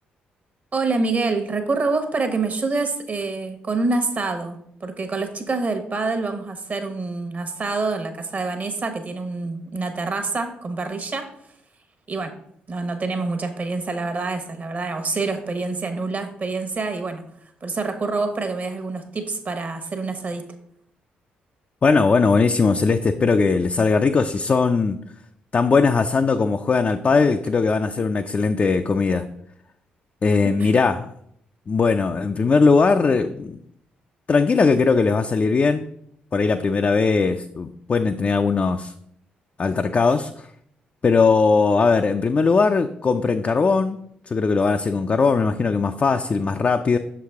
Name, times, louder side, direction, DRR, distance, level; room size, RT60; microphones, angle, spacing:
voice 1, 0.7-11.3 12.1-12.3 12.7-17.2 17.6-20.5 30.4-30.7, right 3 dB, 40° right, 7 dB, 1.1 m, -26 dB
voice 2, 21.8-25.0 25.5-29.2 30.2-31.1 31.7-33.6 34.3-35.9 36.3-38.9 39.6-40.5 41.0-44.0 44.3-47.0, left 4 dB, 35° left, 6 dB, 0.4 m, -19 dB
6.2 x 4.8 x 3.5 m, 0.71 s
hypercardioid pair, 50°, 4 cm